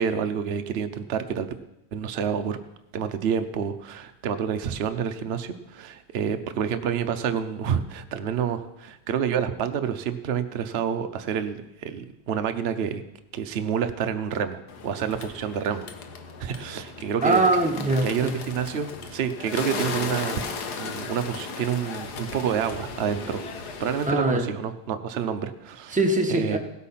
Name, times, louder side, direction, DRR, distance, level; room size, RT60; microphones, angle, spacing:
voice 1, 0.0-1.5 1.9-2.6 2.9-13.0 13.3-15.9 16.4-17.4 18.0-20.4 20.8-23.4 23.8-26.0 26.3-26.6, right 7 dB, 90° right, 8 dB, 0.5 m, -28 dB
Bird, 14.7-24.1, left 4 dB, 60° left, 1.6 m, -36 dB
voice 2, 17.2-18.3 24.1-24.5 25.9-26.6, right 2 dB, 5° right, 3 dB, 0.9 m, -22 dB
17.0 x 8.4 x 5.7 m, 0.88 s
omnidirectional pair, 2.1 m